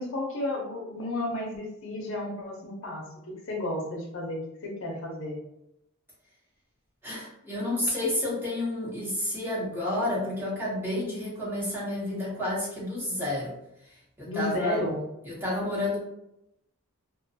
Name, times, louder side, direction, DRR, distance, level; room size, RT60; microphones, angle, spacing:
voice 1, 0.0-5.4 14.3-15.0, left 1 dB, 65° left, -1 dB, 0.6 m, -32 dB
voice 2, 7.0-13.5 13.9-14.9 15.2-16.0, left 1 dB, 10° right, -7 dB, 0.9 m, -30 dB
2.4 x 2.2 x 2.7 m, 0.83 s
head